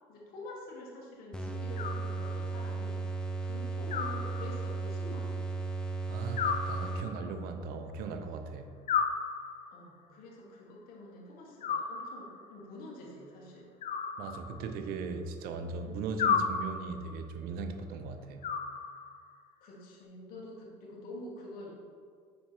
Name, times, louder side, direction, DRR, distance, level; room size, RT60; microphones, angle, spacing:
voice 1, 0.1-3.0 3.4-5.4 6.8-7.1 9.7-13.7 16.3-16.4 19.6-21.7, left 1 dB, 65° left, -2 dB, 1.4 m, -47 dB
sound 1, 1.3-7.4, right 3 dB, 5° left, 0.6 m, -36 dB
Animal, 1.8-2.6 3.9-4.9 6.4-7.4 8.9-9.9 11.6-12.5 13.8-14.9 16.2-17.1 18.4-19.3, left 6 dB, 50° left, 0.5 m, -34 dB
voice 2, 6.1-8.7 14.2-18.5, right 4 dB, 70° right, 7 dB, 0.6 m, -38 dB
5.3 x 4.3 x 4.4 m, 2.1 s
supercardioid pair, 75°, 16 cm